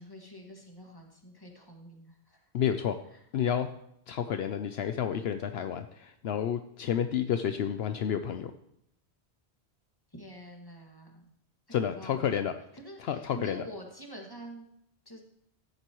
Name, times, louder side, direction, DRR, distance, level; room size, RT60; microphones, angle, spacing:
voice 1, 0.0-2.4 3.1-3.2 10.1-11.3 12.0-12.3 12.8-14.7 15.1-15.2, right 1 dB, 20° left, 0 dB, 2.0 m, -47 dB
voice 2, 2.5-3.0 3.3-3.7 4.1-8.5 11.7-12.5 13.0-13.6, left 8 dB, 70° left, 9 dB, 0.8 m, -30 dB
14.0 x 9.7 x 3.0 m, 0.74 s
omnidirectional pair, 1.1 m